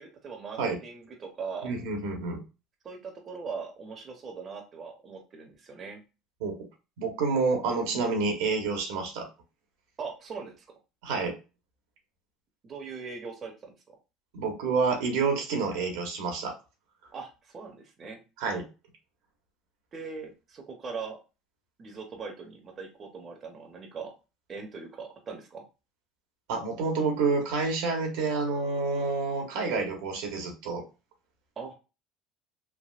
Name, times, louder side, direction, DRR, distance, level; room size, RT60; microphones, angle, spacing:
voice 1, 0.0-1.7 2.8-6.0 10.0-10.8 12.6-13.9 17.1-18.2 19.9-21.2 21.8-24.1 24.5-25.6 31.6-31.7, right 5 dB, 40° right, 3 dB, 0.7 m, -40 dB
voice 2, 1.6-2.4 6.4-6.6 7.0-9.3 11.0-11.4 14.3-16.5 18.4-18.7 26.5-30.8, right 4 dB, 80° right, 2 dB, 0.9 m, -28 dB
3.3 x 2.1 x 2.4 m, 0.30 s
supercardioid pair, 85°, 0 cm